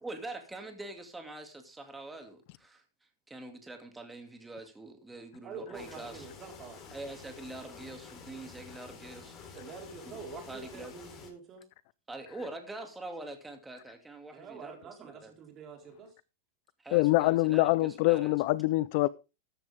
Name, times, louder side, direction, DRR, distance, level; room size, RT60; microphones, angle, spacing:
voice 1, 0.0-2.8 3.3-6.3 6.9-9.6 10.0-10.2 10.5-10.9 12.1-15.3 16.8-18.3, right 2 dB, 10° right, 2.4 m, -44 dB
voice 2, 5.4-6.9 9.5-11.7 14.3-16.1, right 5 dB, 30° right, 4.4 m, -46 dB
sound 1, 5.7-11.3, left 5 dB, 25° left, 4.4 m, -49 dB
voice 3, 16.9-19.1, left 19 dB, 55° left, 0.6 m, -25 dB
14.0 x 9.9 x 3.5 m
supercardioid pair, 135°, 0 cm